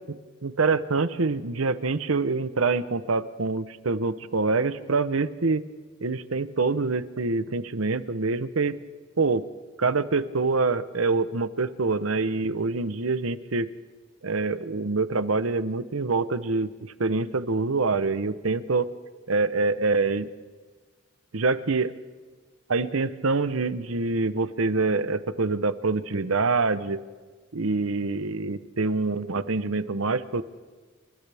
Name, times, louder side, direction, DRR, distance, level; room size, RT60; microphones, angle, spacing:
voice 1, 0.4-5.6 6.0-8.8 9.2-9.5 9.8-13.7 14.2-18.9 19.3-20.3 21.3-21.9 22.7-27.0 27.5-30.4, right 3 dB, 85° right, 13 dB, 0.9 m, -25 dB
29.5 x 25.0 x 3.5 m, 1.4 s
head